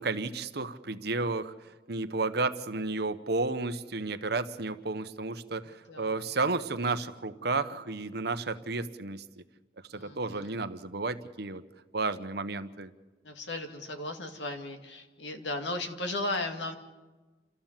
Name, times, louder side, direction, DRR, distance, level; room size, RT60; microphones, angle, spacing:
voice 1, 0.0-1.5 1.9-9.2 9.9-11.6 11.9-12.9, right 3 dB, 65° right, 10 dB, 1.1 m, -32 dB
voice 2, 5.9-6.3 9.9-10.6 13.2-16.8, left 2 dB, 90° left, 5 dB, 2.3 m, -36 dB
29.0 x 14.0 x 7.4 m, 1.2 s
head